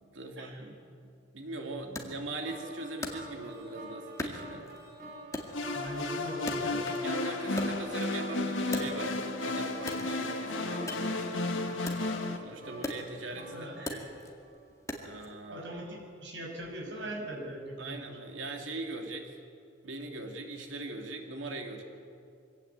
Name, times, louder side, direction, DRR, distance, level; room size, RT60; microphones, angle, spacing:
voice 1, 0.0-4.7 7.0-11.9 12.4-14.0 15.0-15.6 17.8-19.3 19.8-21.8, right 2 dB, 85° right, 3 dB, 2.7 m, -41 dB
Wood, 2.0-3.7 4.2-4.9 5.3-7.2 7.4-9.4 9.8-15.3, left 1 dB, 15° left, 2.0 m, -41 dB
sound 1, 2.5-14.6, right 1 dB, 50° right, 5.5 m, -47 dB
sound 2, 5.5-12.4, left 2 dB, 85° left, 1.8 m, -33 dB
voice 2, 5.7-6.8 13.5-14.1 15.5-18.1, right 1 dB, 65° right, 0 dB, 5.9 m, -41 dB
24.0 x 17.0 x 8.3 m, 2.4 s
head